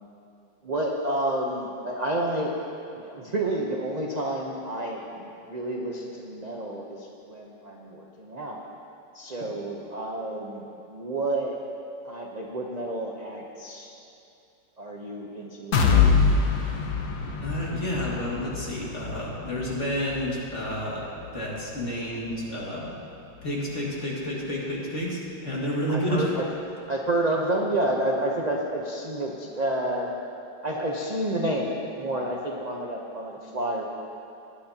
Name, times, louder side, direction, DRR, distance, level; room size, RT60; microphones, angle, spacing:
voice 1, 0.6-2.6 2.9-8.6 9.1-11.6 12.0-13.9 14.8-16.3 25.9-26.4 26.9-30.1 30.6-33.8, right 1 dB, 40° right, -2 dB, 0.6 m, -30 dB
sound 1, 15.7-23.5 23.9-24.0 24.4-24.5, left 5 dB, 60° left, 1.3 m, -26 dB
voice 2, 17.4-21.1 21.3-22.9 23.4-26.3, equal, 40° left, -5 dB, 2.2 m, -30 dB
18.5 x 10.5 x 2.8 m, 2.7 s
omnidirectional pair, 2.0 m